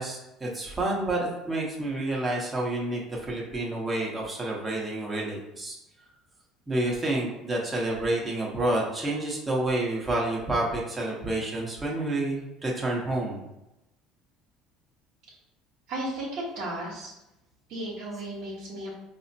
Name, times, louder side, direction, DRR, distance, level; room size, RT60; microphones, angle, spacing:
voice 1, 0.0-5.8 6.7-13.4, right 1 dB, 20° right, -3 dB, 1.0 m, -29 dB
voice 2, 15.9-17.1 17.7-19.0, right 1 dB, 65° right, -5 dB, 1.0 m, -34 dB
4.8 x 2.1 x 2.7 m, 0.92 s
supercardioid pair, 90°, 0 cm